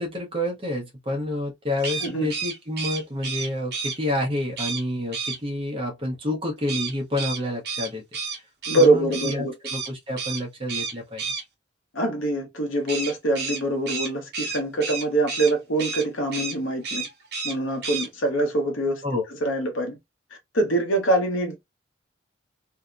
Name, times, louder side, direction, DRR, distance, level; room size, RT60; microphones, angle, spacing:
voice 1, 0.0-8.0 8.8-11.3 19.0-19.2, left 1 dB, 25° right, 0.7 m, -29 dB
sound 1, 1.8-4.0 4.6-4.8 5.1-5.4 6.7-9.3 9.6-9.9 10.2-10.4 10.7-11.4 12.9-15.5 15.8-16.0 16.3-16.6 16.8-17.5 17.8-18.1, right 5 dB, 50° right, 1.0 m, -31 dB
voice 2, 2.0-2.3 8.7-9.5 11.9-17.1 17.4-19.0 19.4-20.0 20.5-21.6, right 2 dB, 80° left, 0.9 m, -24 dB
2.7 x 2.1 x 2.4 m
head